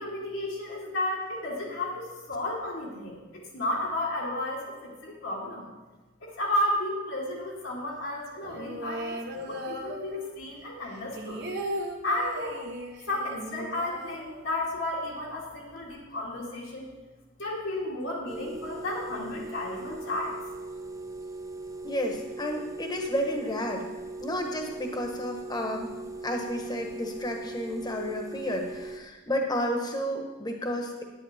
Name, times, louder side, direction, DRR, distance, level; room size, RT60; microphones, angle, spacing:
voice 1, 0.0-5.7 6.4-11.4 12.0-12.6 13.1-16.9 17.4-20.4, left 1 dB, 80° left, -5 dB, 2.4 m, -33 dB
sound 1, 8.4-10.5 10.8-14.8 15.1-15.2 15.4-16.0, equal, 60° right, 1.2 m, -37 dB
sound 2, 18.3-29.0, right 2 dB, 15° right, 0.5 m, -40 dB
voice 2, 21.8-23.8 24.2-25.9 26.2-31.0, equal, 20° left, 2 dB, 1.2 m, -31 dB
10.5 x 9.5 x 4.3 m, 1.2 s
head